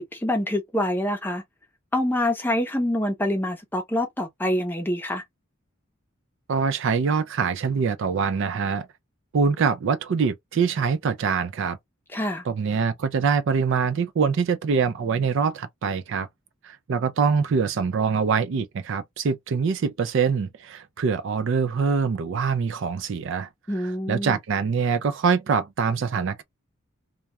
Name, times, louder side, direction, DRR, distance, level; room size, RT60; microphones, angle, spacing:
voice 1, 0.0-1.4 1.9-5.2 12.1-12.4 23.7-24.4, left 1 dB, 10° left, 0.6 m, -26 dB
voice 2, 6.5-8.9 9.3-11.8 12.5-16.3 16.6-23.5 23.8-26.4, right 5 dB, 60° right, 0.4 m, -24 dB
2.3 x 2.1 x 2.8 m
head